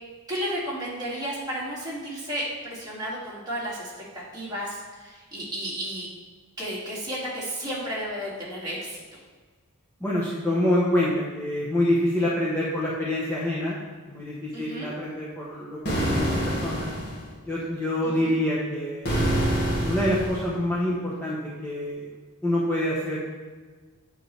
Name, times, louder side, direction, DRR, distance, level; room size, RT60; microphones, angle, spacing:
voice 1, 0.3-3.9 4.3-6.1 6.6-9.0 14.5-14.9 18.2-18.3, equal, 20° right, -7 dB, 2.4 m, -32 dB
voice 2, 10.0-13.8 14.1-16.9 17.4-19.3 19.8-22.2 22.4-23.2, left 1 dB, 10° left, -7 dB, 1.0 m, -26 dB
sound 1, 15.9-17.3 19.0-20.5, equal, 50° left, 1.8 m, -26 dB
8.8 x 6.5 x 3.4 m, 1.4 s
head